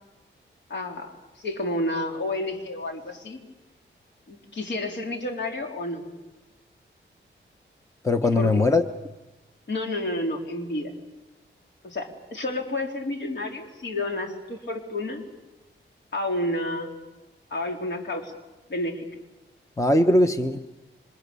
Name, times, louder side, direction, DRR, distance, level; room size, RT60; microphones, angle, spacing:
voice 1, 0.7-1.1 1.4-3.4 4.3-6.1 8.3-8.6 9.7-10.9 11.8-15.2 16.1-16.9 17.5-18.3 18.7-19.1, left 1 dB, 65° left, 2 dB, 3.9 m, -30 dB
voice 2, 8.0-8.8 19.8-20.7, left 2 dB, 15° left, 7 dB, 1.1 m, -20 dB
28.0 x 26.0 x 7.0 m, 1.1 s
wide cardioid pair, 115°, 20 cm